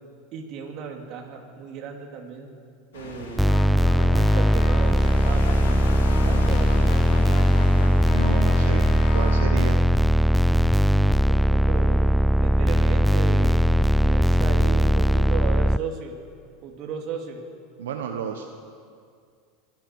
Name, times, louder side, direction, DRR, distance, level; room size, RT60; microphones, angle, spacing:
voice 1, 0.3-2.5 2.9-5.5 6.2-6.7 11.2-16.2 16.6-17.4, right 6 dB, 55° right, 2 dB, 2.8 m, -35 dB
sound 1, 2.9-9.4, left 3 dB, 90° left, 2.7 m, -36 dB
Brass instrument, 3.4-9.6, left 5 dB, 70° left, 2.4 m, -38 dB
sound 2, 3.4-15.8, equal, ahead, 0.3 m, -19 dB
voice 2, 8.1-8.9 9.1-9.8 17.8-18.6, right 7 dB, 85° right, 5 dB, 1.0 m, -31 dB
25.0 x 12.0 x 4.7 m, 2.2 s
hypercardioid pair, 100°, 0 cm